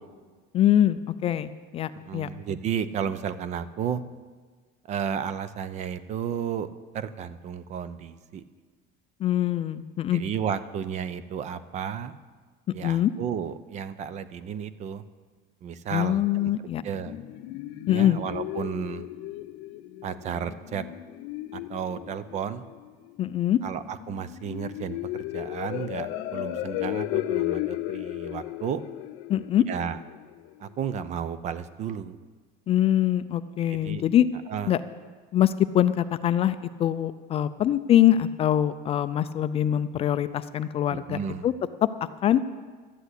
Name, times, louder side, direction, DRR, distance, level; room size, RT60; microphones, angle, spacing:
voice 1, 0.5-2.3 9.2-10.2 12.8-13.1 15.9-16.8 17.9-18.2 23.2-23.6 29.3-29.6 32.7-34.3 34.7-34.8 35.3-41.2 41.4-41.5 42.2-42.4, left 11 dB, 30° left, 12 dB, 0.4 m, -23 dB
voice 2, 1.9-4.0 4.9-8.4 10.1-12.1 12.7-15.0 15.6-16.5 16.8-17.1 17.9-19.1 20.0-20.9 21.5-22.6 23.6-28.8 29.7-30.0 30.6-32.2 33.7-34.0 34.5-34.8 40.9-41.5, right 8 dB, 35° right, 14 dB, 0.6 m, -33 dB
sound 1, 16.6-30.5, left 15 dB, 80° left, 0.7 m, -35 dB
13.0 x 10.5 x 8.2 m, 1.4 s
cardioid pair, 170°, 20 cm